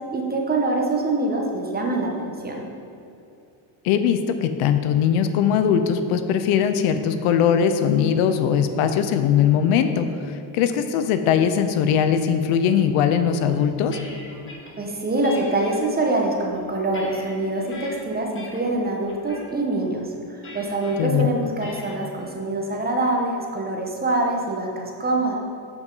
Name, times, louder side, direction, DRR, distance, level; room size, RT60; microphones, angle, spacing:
voice 1, 0.1-2.6 14.8-20.0 20.3-25.4, right 2 dB, 20° right, 0 dB, 1.0 m, -24 dB
voice 2, 3.8-14.0 21.0-21.3, left 8 dB, 85° left, 9 dB, 0.7 m, -20 dB
sound 1, 13.5-14.7 15.2-15.8 16.4-17.9 18.3-18.7 19.1-19.5 20.4-21.0 21.6-22.0, left 2 dB, 25° left, 1.3 m, -42 dB
7.7 x 5.9 x 3.9 m, 2.7 s
cardioid pair, 115°, 49 cm